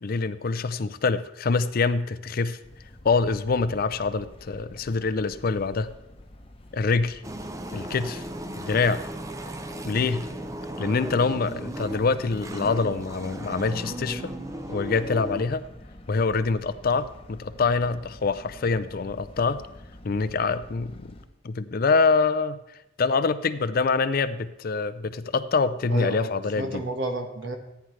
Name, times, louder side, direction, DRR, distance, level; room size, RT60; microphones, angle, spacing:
voice 1, 0.0-2.6 3.0-5.9 6.7-7.2 7.7-8.2 8.6-9.0 9.8-10.3 10.8-14.3 14.7-15.6 16.1-19.6 20.0-21.1 21.4-22.6 23.0-26.8, left 4 dB, 50° left, 14 dB, 0.5 m, -25 dB
sound 1, 2.6-21.3, left 1 dB, 30° left, 0.9 m, -48 dB
sound 2, 7.2-15.5, right 1 dB, 15° right, 0.6 m, -36 dB
voice 2, 25.9-27.6, right 2 dB, 70° right, 4 dB, 1.6 m, -31 dB
14.5 x 9.3 x 3.2 m, 0.88 s
head